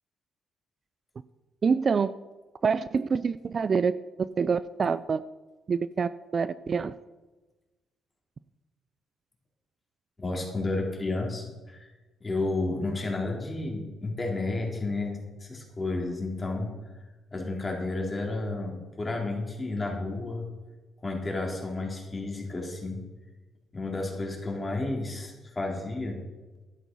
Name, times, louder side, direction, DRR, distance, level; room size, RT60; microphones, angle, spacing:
voice 1, 1.6-2.1 2.6-5.2 5.7-6.9, right 5 dB, 45° right, 15 dB, 0.4 m, -26 dB
voice 2, 10.2-11.9 12.2-16.7 17.3-20.5 21.0-23.0 23.7-26.2, left 2 dB, 25° left, -1 dB, 3.8 m, -32 dB
12.5 x 11.0 x 5.5 m, 1.2 s
cardioid pair, 90°, 0 cm